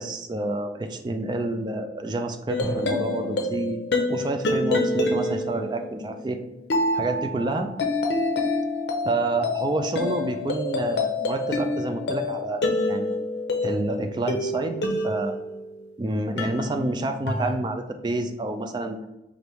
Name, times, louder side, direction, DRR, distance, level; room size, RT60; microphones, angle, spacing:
voice 1, 0.0-3.8 4.1-6.4 6.9-7.7 9.0-13.1 13.6-14.8 15.0-15.4 16.0-19.1, right 2 dB, 25° right, 6 dB, 0.3 m, -28 dB
sound 1, 2.5-15.9 16.4-17.6, left 2 dB, 70° left, 0.5 m, -27 dB
Drum, 2.6-4.5, equal, 10° left, 0.9 m, -38 dB
4.8 x 2.5 x 3.0 m, 0.95 s
head